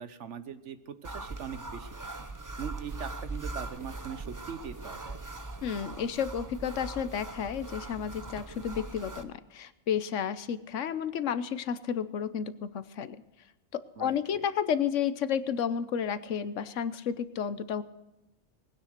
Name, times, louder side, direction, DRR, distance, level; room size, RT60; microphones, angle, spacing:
voice 1, 0.0-1.9 2.6-5.2 14.0-14.4, right 7 dB, 75° right, 12 dB, 1.3 m, -41 dB
sound 1, 1.0-9.2, right 2 dB, 20° right, 0.8 m, -40 dB
voice 2, 5.6-13.2 13.7-17.8, left 8 dB, 90° left, 15 dB, 1.2 m, -32 dB
20.0 x 9.7 x 6.6 m, 1.0 s
omnidirectional pair, 1.2 m